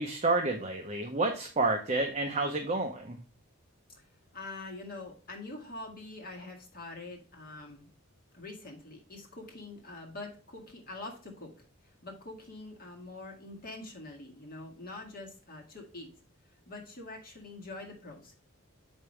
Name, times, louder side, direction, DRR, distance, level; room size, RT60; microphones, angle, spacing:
voice 1, 0.0-3.2, right 2 dB, 30° right, 3 dB, 0.8 m, -29 dB
voice 2, 4.3-7.9 8.3-16.1 16.7-18.4, left 2 dB, 45° left, 0 dB, 1.8 m, -45 dB
8.0 x 5.4 x 3.2 m, 0.38 s
head